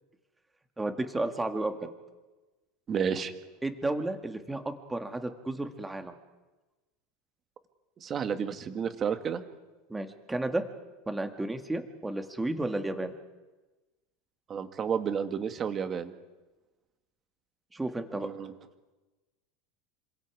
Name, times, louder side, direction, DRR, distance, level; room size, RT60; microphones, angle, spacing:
voice 1, 0.8-1.9 3.6-6.1 9.9-10.6 11.1-13.1 17.7-18.3, right 2 dB, 10° right, 6 dB, 2.0 m, -32 dB
voice 2, 2.9-3.3 8.0-9.4 14.5-16.1 18.2-18.5, right 7 dB, 25° right, 8 dB, 1.8 m, -31 dB
28.0 x 26.5 x 4.8 m, 1.2 s
supercardioid pair, 145°, 0 cm